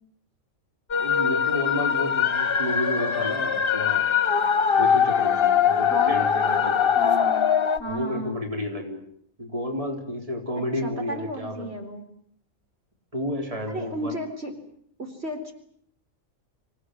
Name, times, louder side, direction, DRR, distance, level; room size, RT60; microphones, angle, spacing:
sound 1, 0.9-7.8, left 7 dB, 45° left, 1.6 m, -22 dB
voice 1, 1.0-4.1 4.8-7.0 7.9-9.0 9.4-11.7 13.1-14.2, left 1 dB, 25° right, 2 dB, 4.0 m, -31 dB
voice 2, 5.9-6.2 7.0-7.5 7.8-8.4 10.6-12.1 13.7-14.6 15.0-15.5, right 1 dB, 50° right, 3 dB, 4.3 m, -33 dB
28.0 x 17.5 x 9.8 m, 0.69 s
omnidirectional pair, 1.4 m